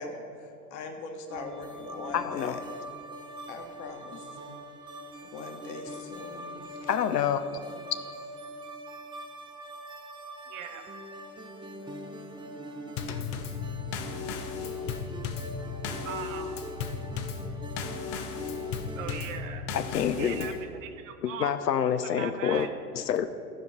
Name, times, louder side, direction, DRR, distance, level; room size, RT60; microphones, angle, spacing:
voice 1, 0.0-2.6 3.5-4.3 5.2-6.6 7.5-7.8, left 3 dB, 35° left, 4 dB, 1.4 m, -41 dB
sound 1, 1.3-19.2, right 1 dB, 10° right, 0.6 m, -43 dB
voice 2, 2.1-2.6 4.5-4.6 6.9-7.4 19.7-20.5 21.2-23.3, left 8 dB, 75° left, 11 dB, 0.6 m, -28 dB
voice 3, 10.5-10.8 14.6-14.9 16.0-16.8 18.5-19.8 20.1-21.5 21.8-22.7, right 8 dB, 50° right, 6 dB, 1.1 m, -40 dB
Drum kit / Snare drum / Bass drum, 13.0-20.6, left 6 dB, 20° left, 0.3 m, -35 dB
14.5 x 5.1 x 6.8 m, 2.6 s
figure-of-eight pair, 90°, 49 cm